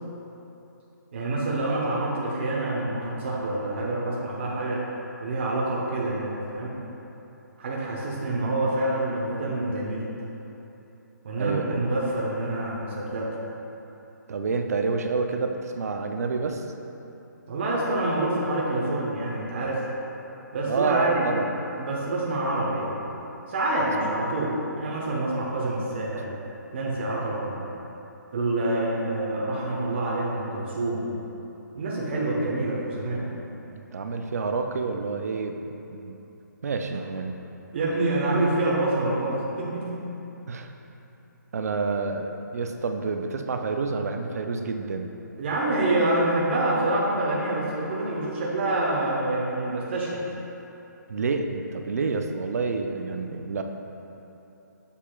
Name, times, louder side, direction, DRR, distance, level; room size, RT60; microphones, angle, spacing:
voice 1, 1.1-4.8 5.2-6.7 7.6-10.1 11.2-13.3 17.5-19.8 20.5-21.3 21.8-23.0 23.5-26.3 26.7-27.6 28.3-31.1 31.7-33.3 37.7-40.0 45.4-50.2, right 2 dB, 35° right, -4 dB, 0.9 m, -27 dB
voice 2, 11.4-11.8 14.3-16.7 20.7-21.5 24.0-24.2 33.9-36.2 36.6-37.5 40.5-40.7 41.5-45.2 51.1-53.6, right 4 dB, 50° right, 5 dB, 0.5 m, -28 dB
7.2 x 6.9 x 2.3 m, 3.0 s
hypercardioid pair, 170°, 10 cm